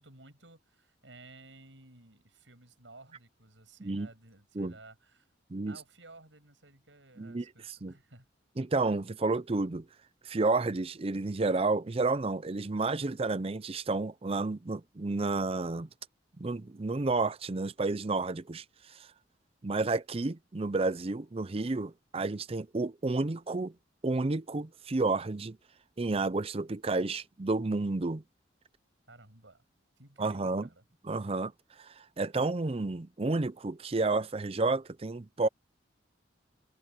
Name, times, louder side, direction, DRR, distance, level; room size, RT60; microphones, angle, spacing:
voice 1, 0.0-5.3 5.7-8.3 29.1-29.6 30.0-30.8, right 2 dB, 80° right, 7.8 m, -55 dB
voice 2, 8.6-9.9 10.2-15.9 16.4-19.1 19.6-23.7 24.0-25.6 26.0-28.2 30.2-30.7 31.1-31.5 31.8-35.5, right 3 dB, 30° right, 0.6 m, -31 dB
head